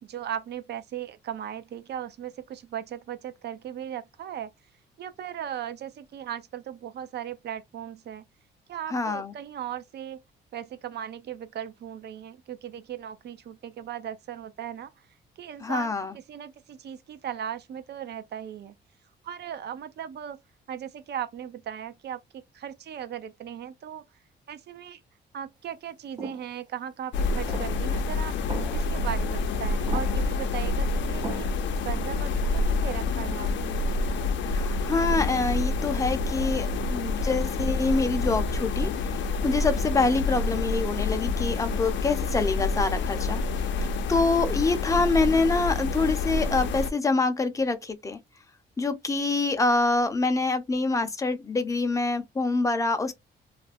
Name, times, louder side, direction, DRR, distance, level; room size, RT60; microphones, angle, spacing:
voice 1, 0.0-4.5 5.0-8.2 8.7-10.2 10.5-14.9 15.4-18.7 19.2-20.4 20.7-24.0 24.5-25.0 25.3-31.5 31.8-33.8, right 9 dB, 55° right, 0.5 m, -37 dB
voice 2, 8.9-9.3 15.6-16.1 34.4-43.4 43.8-48.2 48.8-53.1, left 3 dB, 15° left, 0.5 m, -26 dB
sound 1, 26.2-26.5 27.5-27.9 28.5-29.0 29.9-30.4 31.2-31.7, right 3 dB, 20° right, 0.7 m, -38 dB
sound 2, 27.1-46.9, left 3 dB, 70° left, 0.5 m, -28 dB
2.5 x 2.2 x 3.3 m
cardioid pair, 90°, 20 cm